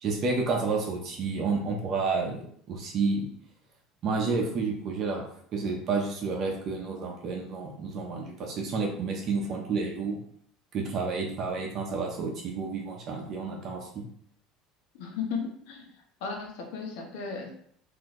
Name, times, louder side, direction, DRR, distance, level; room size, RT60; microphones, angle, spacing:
voice 1, 0.0-3.3 4.0-5.2 5.5-10.2 10.7-14.0, right 4 dB, 45° right, 0 dB, 0.7 m, -30 dB
voice 2, 14.9-15.9 16.2-17.5, left 5 dB, 80° left, 1 dB, 1.0 m, -35 dB
4.0 x 2.7 x 3.1 m, 0.64 s
cardioid pair, 140°, 0 cm